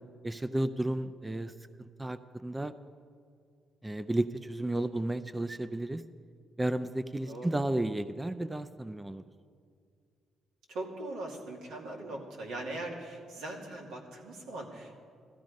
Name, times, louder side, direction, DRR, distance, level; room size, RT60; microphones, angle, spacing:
voice 1, 0.2-1.5 1.8-2.7 3.8-6.0 6.6-9.2, right 1 dB, 15° right, 13 dB, 0.5 m, -33 dB
voice 2, 7.3-7.6 10.7-14.9, right 2 dB, 90° right, -1 dB, 2.5 m, -40 dB
16.0 x 14.0 x 5.2 m, 2.2 s
cardioid pair, 90°, 0 cm